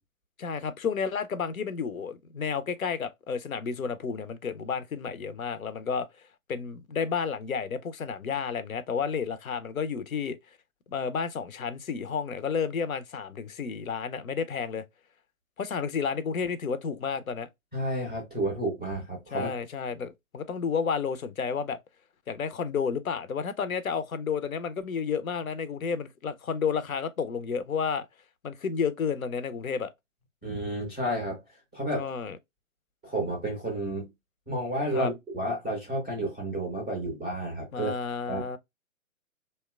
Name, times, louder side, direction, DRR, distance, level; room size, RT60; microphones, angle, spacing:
voice 1, 0.4-10.4 10.9-14.8 15.6-17.5 19.3-21.8 22.3-28.1 28.4-29.9 31.9-32.4 34.9-35.1 37.7-38.6, left 6 dB, 85° left, 0.5 m, -31 dB
voice 2, 17.7-19.6 30.4-31.4 31.7-32.1 33.0-34.1 34.5-37.9 38.3-38.4, right 1 dB, 5° right, 0.4 m, -31 dB
2.8 x 2.1 x 2.2 m
figure-of-eight pair, 120°, 41 cm